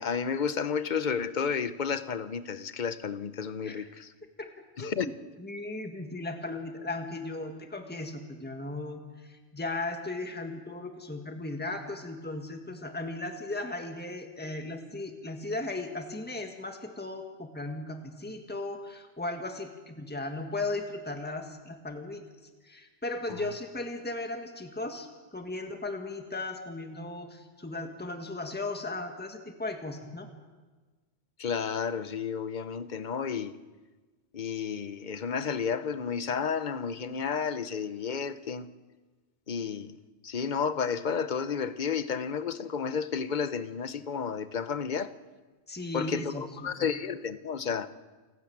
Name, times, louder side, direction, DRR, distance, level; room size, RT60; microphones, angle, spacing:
voice 1, 0.0-4.1 4.8-5.1 31.4-33.6 34.3-38.7 39.5-39.9 40.2-45.1 45.9-47.9, left 6 dB, 45° left, 0.9 m, -31 dB
voice 2, 4.8-22.2 22.6-30.3 45.7-46.9, left 2 dB, 10° left, 1.7 m, -37 dB
28.5 x 12.0 x 8.7 m
omnidirectional pair, 1.2 m